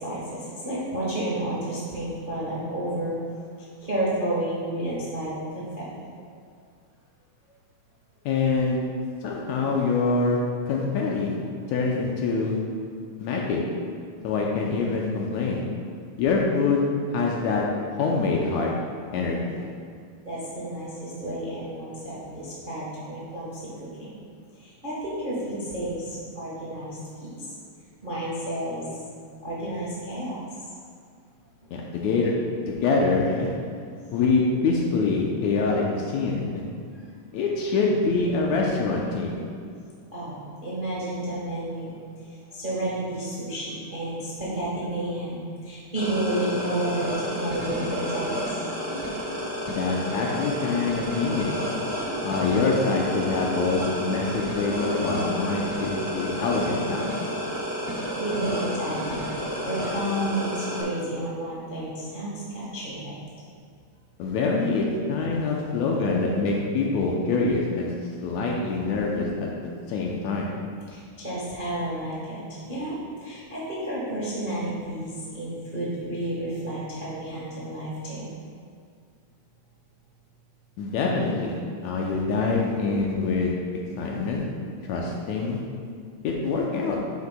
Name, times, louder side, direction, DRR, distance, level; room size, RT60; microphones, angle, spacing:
voice 1, 0.0-3.2 3.8-6.0 20.2-23.6 24.0-24.1 24.6-27.3 28.0-28.9 29.4-30.4 40.1-41.9 42.5-48.5 57.8-63.2 70.9-72.4 72.7-78.3, right 1 dB, 70° right, -7 dB, 0.4 m, -31 dB
voice 2, 8.3-8.8 9.2-10.4 10.7-11.4 11.7-12.6 13.2-13.6 14.2-15.6 16.2-16.8 17.1-17.7 18.0-18.7 19.1-19.6 31.7-32.3 32.7-33.6 34.1-36.6 37.3-39.4 49.7-51.5 52.2-57.2 64.2-67.9 68.2-69.5 69.9-70.5 80.8-83.5 84.0-84.4 84.9-85.6 86.2-87.0, left 4 dB, 80° left, -2 dB, 1.9 m, -25 dB
sound 1, 46.0-60.8, equal, 20° right, 0.6 m, -31 dB
9.4 x 7.6 x 2.3 m, 2.2 s
omnidirectional pair, 3.4 m